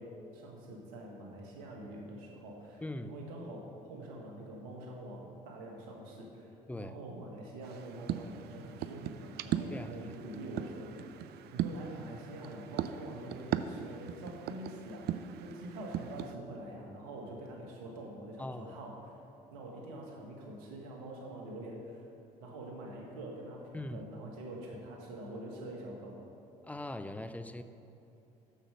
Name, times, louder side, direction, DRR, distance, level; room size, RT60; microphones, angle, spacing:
voice 1, 0.0-6.5 6.7-19.2 19.5-22.1 22.4-26.2, right 1 dB, 80° right, 0 dB, 1.6 m, -45 dB
voice 2, 2.8-3.2 6.7-7.0 9.7-10.2 18.4-18.8 23.7-24.0 26.6-27.6, left 1 dB, 5° left, 10 dB, 0.5 m, -41 dB
sound 1, 7.6-16.3, right 10 dB, 55° right, 0.5 m, -39 dB
7.3 x 6.7 x 6.4 m, 2.9 s
hypercardioid pair, 60°, 20 cm